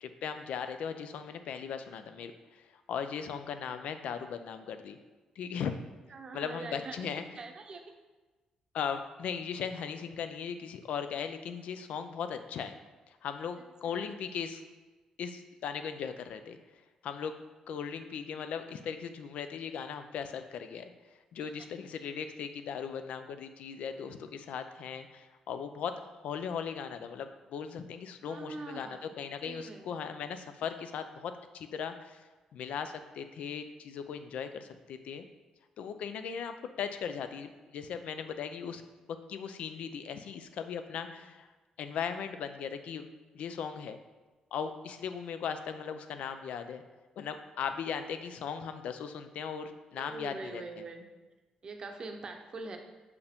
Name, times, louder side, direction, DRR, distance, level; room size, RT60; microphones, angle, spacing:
voice 1, 0.0-5.0 5.4-5.8 6.3-7.2 8.7-12.7 13.1-14.6 15.2-16.6 17.0-17.3 17.7-20.9 21.3-32.2 32.5-35.3 35.8-38.8 39.3-41.5 41.8-43.0 43.3-44.0 44.5-46.8 47.2-50.8, left 7 dB, 80° left, 9 dB, 0.4 m, -38 dB
voice 2, 6.1-7.8 13.6-14.1 21.4-21.7 28.3-29.1 29.4-29.9 49.9-51.1 51.6-52.8, right 3 dB, 40° right, 4 dB, 0.7 m, -44 dB
6.4 x 4.8 x 3.5 m, 1.2 s
cardioid pair, 135°, 2 cm